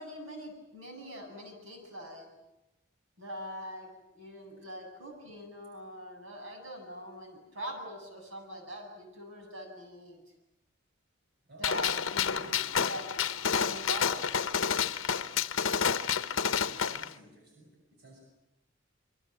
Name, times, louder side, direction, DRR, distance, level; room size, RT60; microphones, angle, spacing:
voice 1, 0.0-2.3 3.2-3.9 4.1-10.2 11.6-12.5 12.9-13.0 13.5-14.3, equal, 70° right, 3 dB, 8.0 m, -42 dB
voice 2, 11.5-12.6 15.8-18.2, right 1 dB, 50° right, 1 dB, 6.2 m, -55 dB
Gunshot gunfire, 11.6-17.1, left 7 dB, 70° left, 0.9 m, -29 dB
27.5 x 24.0 x 7.6 m, 0.93 s
head